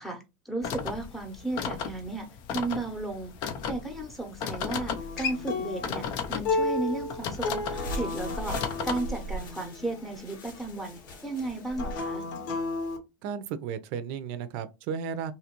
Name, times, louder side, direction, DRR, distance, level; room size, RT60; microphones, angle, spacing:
voice 1, 0.0-2.3 2.5-3.3 3.7-12.3, right 2 dB, ahead, 0.8 m, -34 dB
sound 1, 0.6-9.0, left 6 dB, 50° left, 0.5 m, -35 dB
Acoustic guitar, 5.0-10.2 11.7-13.0, left 3 dB, 70° left, 1.0 m, -32 dB
sound 2, 7.7-12.1, equal, 85° left, 1.2 m, -40 dB
voice 2, 13.2-15.3, right 7 dB, 55° right, 0.5 m, -34 dB
2.8 x 2.5 x 2.9 m
hypercardioid pair, 110°, 11 cm